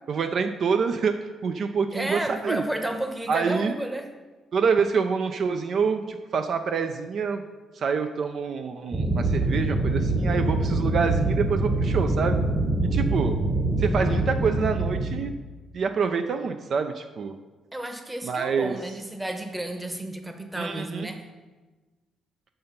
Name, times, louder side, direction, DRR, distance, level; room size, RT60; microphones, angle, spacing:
voice 1, 0.1-2.6 3.3-3.8 4.5-7.4 7.7-12.4 12.9-13.4 13.8-15.3 15.7-17.3 18.2-18.7 20.6-21.1, right 5 dB, 60° right, 7 dB, 0.5 m, -26 dB
voice 2, 1.9-4.1 17.7-21.3, right 1 dB, 10° right, 6 dB, 1.0 m, -32 dB
sound 1, 8.9-15.2, right 2 dB, 30° right, 1.3 m, -24 dB
6.6 x 5.6 x 5.8 m, 1.3 s
cardioid pair, 90°, 0 cm